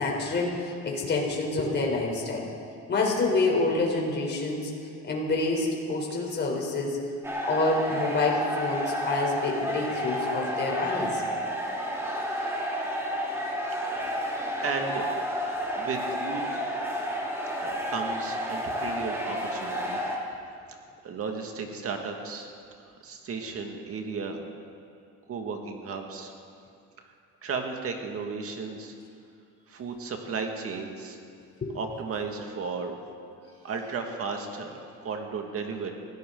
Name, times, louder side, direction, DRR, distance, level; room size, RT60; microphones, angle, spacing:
voice 1, 0.0-2.4 2.9-4.7 5.0-7.0 7.5-11.2 31.6-31.7, left 3 dB, 35° left, -1 dB, 3.9 m, -27 dB
sound 1, 7.2-20.2, equal, 10° right, 2.2 m, -31 dB
voice 2, 13.8-15.1 15.8-16.4 17.6-20.0 20.7-20.8 21.0-22.5 22.8-24.4 25.3-26.3 27.4-28.9 29.7-31.2 31.7-32.9 33.6-35.9, right 4 dB, 45° right, 3 dB, 2.0 m, -34 dB
22.5 x 16.0 x 3.9 m, 2.3 s
cardioid pair, 130°, 32 cm